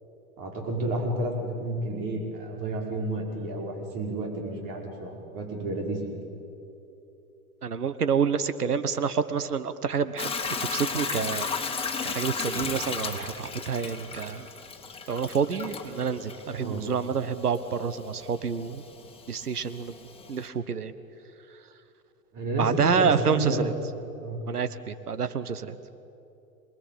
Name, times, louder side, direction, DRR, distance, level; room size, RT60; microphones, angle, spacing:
voice 1, 0.4-6.2 16.6-16.8 22.3-23.7 24.2-24.4, right 1 dB, 45° right, 1 dB, 5.8 m, -31 dB
voice 2, 7.6-10.3 10.7-11.5 12.0-14.5 15.1-18.8 19.3-19.9 20.3-20.9 22.6-23.7 24.5-25.7, right 6 dB, 90° right, 12 dB, 1.3 m, -28 dB
Hiss / Toilet flush / Trickle dribble, 10.2-20.5, left 5 dB, 10° left, 2.8 m, -35 dB
27.5 x 20.0 x 8.9 m, 2.9 s
hypercardioid pair, 90°, 44 cm